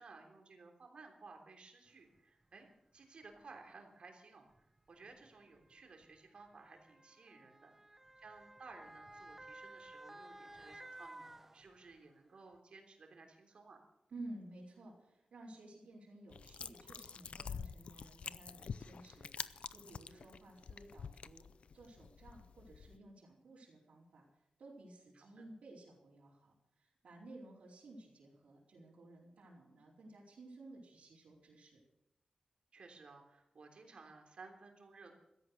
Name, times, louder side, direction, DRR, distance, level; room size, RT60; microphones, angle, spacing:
voice 1, 0.0-13.8 20.1-20.3 25.1-25.5 32.7-35.1, right 4 dB, 55° right, 3 dB, 3.3 m, -57 dB
Motor vehicle (road) / Siren, 2.2-2.3 3.2-3.4 4.5-12.1 12.5-12.6, right 1 dB, 15° right, 0.8 m, -55 dB
voice 2, 14.1-21.5 21.7-24.3 24.6-31.8, right 2 dB, 85° right, -5 dB, 4.6 m, -54 dB
sound 1, 16.3-23.0, left 6 dB, 65° left, 0.5 m, -47 dB
16.0 x 13.5 x 6.6 m, 0.83 s
wide cardioid pair, 155°, 2 cm